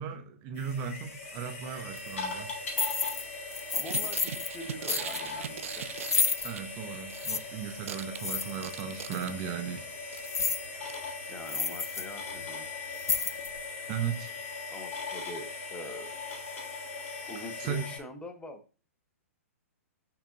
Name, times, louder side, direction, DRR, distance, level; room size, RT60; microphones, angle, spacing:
voice 1, 0.0-2.5 6.4-9.9 13.9-14.3 17.6-17.8, right 8 dB, 35° right, 7 dB, 0.8 m, -36 dB
sound 1, 0.5-18.0, left 4 dB, 60° left, 3.8 m, -40 dB
sound 2, 2.0-2.1 2.7-3.2 3.5-4.5 4.9-5.2 6.0-6.5 7.2-7.4 8.2-8.8 9.1-9.2 10.2-10.7 11.0-11.1 11.5-12.0 12.4-12.5 12.9-13.6, left 5 dB, 80° left, 0.4 m, -30 dB
voice 2, 3.7-5.9 11.3-12.7 14.7-16.2 17.3-18.6, left 1 dB, 10° left, 6 dB, 1.0 m, -44 dB
sound 3, 3.9-7.5 7.7-9.7 10.1-10.4 10.9-11.0 11.3-11.4, right 9 dB, 60° right, 0.5 m, -40 dB
6.6 x 5.7 x 2.7 m, 0.33 s
figure-of-eight pair, 115°, 8 cm